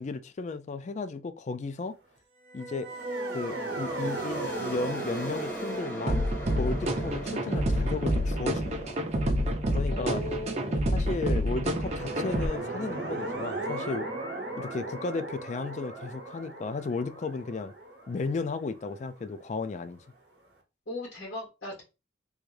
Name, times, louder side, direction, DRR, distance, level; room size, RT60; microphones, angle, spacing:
voice 1, 0.0-1.9 2.5-2.9 3.3-6.3 6.6-9.0 9.7-10.2 10.9-14.1 14.6-17.7 18.1-20.0, left 3 dB, 40° left, 0.3 m, -34 dB
sound 1, 2.5-9.7 11.6-19.4, right 2 dB, 60° right, 0.9 m, -37 dB
sound 2, 2.9-14.5, equal, 60° left, 1.4 m, -43 dB
sound 3, 6.1-12.5, equal, 35° right, 0.5 m, -28 dB
voice 2, 9.9-10.9 20.9-21.8, left 1 dB, 85° left, 2.0 m, -37 dB
3.5 x 2.6 x 3.1 m
head